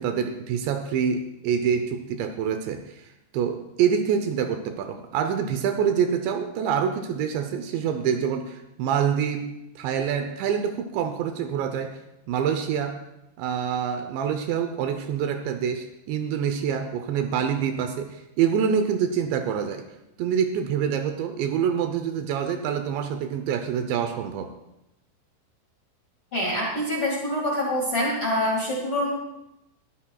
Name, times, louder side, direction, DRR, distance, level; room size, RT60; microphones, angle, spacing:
voice 1, 0.0-9.5 9.8-12.0 12.3-13.0 13.4-19.8 20.2-24.5, right 7 dB, 80° right, 7 dB, 2.8 m, -26 dB
voice 2, 26.3-29.1, left 1 dB, 45° left, -3 dB, 2.1 m, -25 dB
21.0 x 13.5 x 2.3 m, 0.88 s
omnidirectional pair, 5.5 m